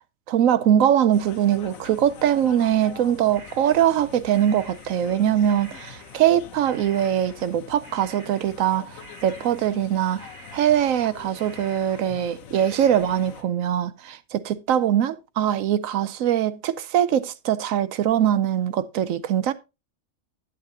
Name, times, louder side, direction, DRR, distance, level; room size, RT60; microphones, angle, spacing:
voice 1, 0.3-10.3 10.5-19.5, right 10 dB, 75° right, 1.0 m, -22 dB
sound 1, 1.1-13.4, left 7 dB, 75° left, 1.3 m, -44 dB
sound 2, 3.3-6.4 6.6-7.6 7.8-8.8 9.0-13.5, right 1 dB, 25° right, 1.4 m, -48 dB
11.0 x 8.4 x 2.7 m
omnidirectional pair, 1.5 m